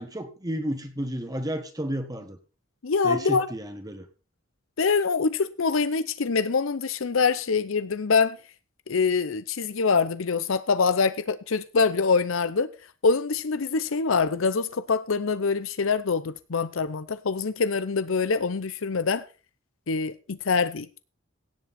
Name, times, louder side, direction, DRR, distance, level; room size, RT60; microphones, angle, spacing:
voice 1, 0.0-2.4 3.0-4.1, equal, 20° right, 1.5 m, -32 dB
voice 2, 2.8-3.5 4.8-8.4 8.9-12.7 13.0-19.2 19.9-20.9, left 4 dB, 75° left, 0.7 m, -24 dB
17.0 x 7.8 x 4.3 m
head